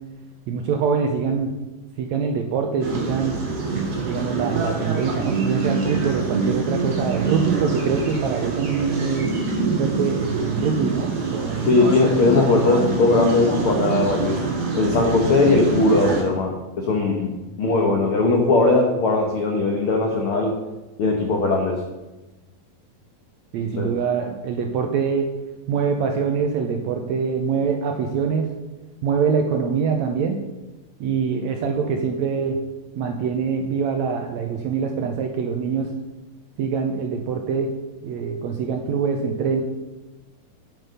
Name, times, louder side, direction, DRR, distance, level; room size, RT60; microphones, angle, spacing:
voice 1, 0.5-1.5 2.0-3.4 4.0-9.3 9.8-11.7 23.5-25.3 25.7-28.5 29.0-30.3 31.0-32.6 33.0-35.9 36.6-37.7 38.0-39.6, right 6 dB, 80° right, 3 dB, 1.6 m, -24 dB
sound 1, 2.8-16.2, right 4 dB, 50° right, 3.1 m, -25 dB
voice 2, 11.6-14.4 14.7-20.6 21.0-21.8 23.8-24.0, left 3 dB, 80° left, 2 dB, 1.2 m, -19 dB
9.8 x 7.9 x 5.5 m, 1.1 s
omnidirectional pair, 4.1 m